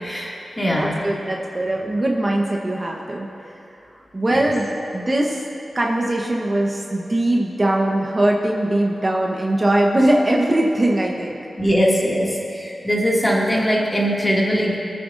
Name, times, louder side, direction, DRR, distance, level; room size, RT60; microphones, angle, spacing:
voice 1, 0.0-1.0 4.3-4.5 11.6-14.8, equal, 20° left, -4 dB, 2.3 m, -21 dB
voice 2, 0.8-3.3 4.1-5.5 5.7-11.4, right 1 dB, 30° right, -1 dB, 1.1 m, -21 dB
23.0 x 9.0 x 2.6 m, 2.7 s
wide cardioid pair, 75°, 0 cm